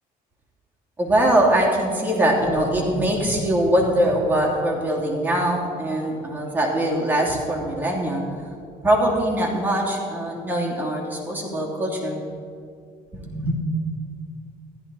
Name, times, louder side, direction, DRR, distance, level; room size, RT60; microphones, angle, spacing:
voice 1, 1.0-8.2 8.8-12.2 13.1-13.5, right 1 dB, 10° right, -3 dB, 2.8 m, -22 dB
14.0 x 11.0 x 4.1 m, 2.4 s
cardioid pair, 110°, 17 cm